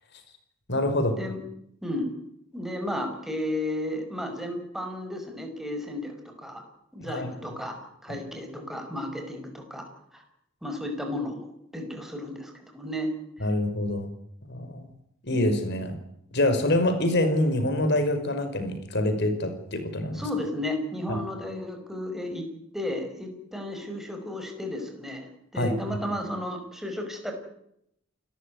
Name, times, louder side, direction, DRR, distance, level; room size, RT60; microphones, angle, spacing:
voice 1, 0.7-1.2 7.0-7.3 13.4-14.1 14.5-14.8 15.2-16.0 16.3-20.2 21.1-21.2 25.5-25.7, left 1 dB, 60° left, 8 dB, 5.4 m, -25 dB
voice 2, 2.5-6.6 6.9-7.8 8.0-10.2 10.6-13.2 20.1-22.5 22.7-27.3, left 1 dB, ahead, 4 dB, 5.4 m, -33 dB
29.0 x 14.5 x 9.6 m, 0.76 s
head